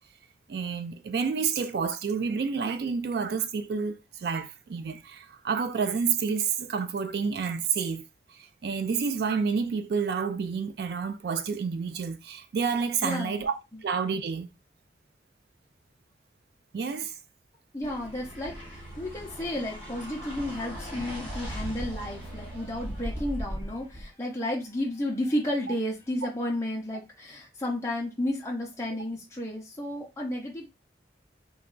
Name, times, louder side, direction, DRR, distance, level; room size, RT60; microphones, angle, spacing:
voice 1, 0.5-8.0 8.3-13.5 13.8-14.5 16.7-17.2, right 5 dB, 60° right, 0.3 m, -29 dB
voice 2, 13.0-13.4 17.7-30.7, left 1 dB, 15° left, 0.6 m, -32 dB
sound 1, 17.8-24.1, equal, 10° right, 1.9 m, -38 dB
3.1 x 2.3 x 3.7 m
head